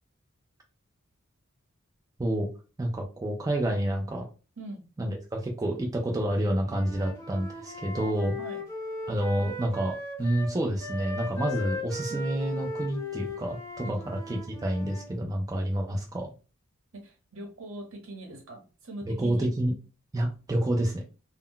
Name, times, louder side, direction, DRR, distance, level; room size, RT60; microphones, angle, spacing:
voice 1, 2.8-4.3 5.0-8.3 9.1-16.3 19.1-19.7 20.1-21.0, right 1 dB, 15° right, 1 dB, 0.3 m, -29 dB
Wind instrument woodwind instrument, 6.6-10.5 10.8-15.1, left 2 dB, 10° left, 1.0 m, -38 dB
voice 2, 16.9-19.5, right 1 dB, 70° right, 2 dB, 0.9 m, -41 dB
2.2 x 2.1 x 3.6 m, 0.33 s
head